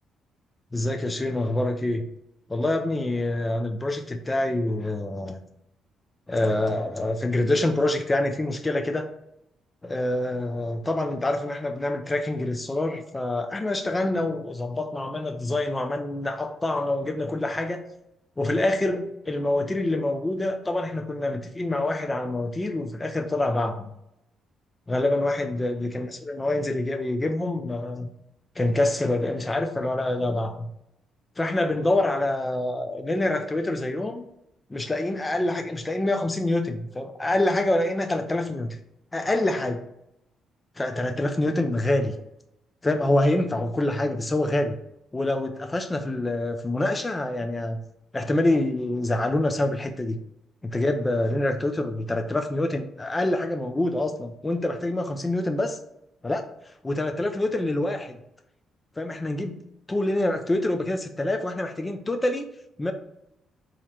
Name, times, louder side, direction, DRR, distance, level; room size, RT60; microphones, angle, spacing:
voice 1, 0.7-2.1 2.5-5.4 6.3-9.1 9.8-17.8 18.4-23.9 24.9-28.1 28.6-30.7 31.4-34.2 34.7-38.8 39.1-39.8 40.8-42.2 42.8-44.8 45.1-47.8 48.1-50.2 50.6-55.8 56.2-58.2 59.0-59.6 59.9-62.4 62.8-62.9, left 1 dB, 15° left, 6 dB, 0.3 m, -26 dB
3.7 x 2.0 x 4.2 m, 0.83 s
cardioid pair, 105°, 0 cm